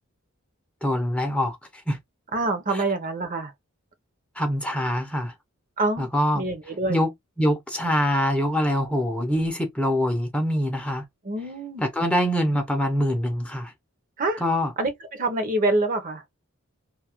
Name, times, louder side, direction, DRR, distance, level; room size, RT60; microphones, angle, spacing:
voice 1, 0.8-2.0 4.4-5.3 6.0-6.4 6.9-7.1 7.4-11.0 11.8-13.7 14.4-14.7, equal, 5° left, 0.6 m, -24 dB
voice 2, 2.3-3.5 5.8-6.1 6.3-7.0 11.2-11.8 14.2-14.4 14.8-16.2, right 2 dB, 40° right, 0.7 m, -26 dB
2.7 x 2.4 x 2.9 m
head